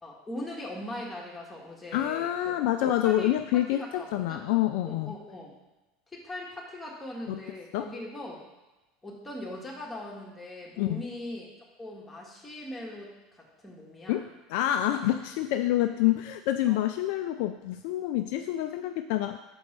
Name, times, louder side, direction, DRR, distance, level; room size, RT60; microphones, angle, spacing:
voice 1, 0.0-2.5 3.0-4.4 4.8-5.5 6.1-8.4 9.0-11.5 11.8-14.3 16.7-16.8, left 1 dB, 10° left, -4 dB, 2.0 m, -40 dB
voice 2, 1.9-5.1 7.3-7.4 7.7-7.9 10.8-11.0 14.1-19.4, left 13 dB, 60° left, 8 dB, 0.3 m, -27 dB
6.1 x 4.5 x 5.6 m, 1.1 s
figure-of-eight pair, 70°, 0 cm